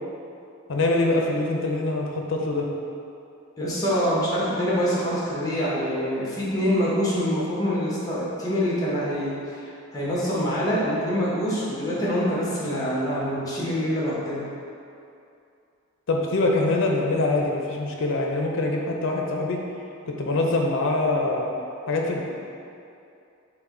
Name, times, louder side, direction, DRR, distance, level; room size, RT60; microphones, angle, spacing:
voice 1, 0.7-2.7 16.1-19.6 20.1-21.5 21.9-22.2, left 2 dB, 65° left, 0 dB, 0.5 m, -24 dB
voice 2, 3.6-14.4, equal, 20° left, -7 dB, 1.0 m, -25 dB
5.6 x 2.1 x 3.7 m, 2.6 s
head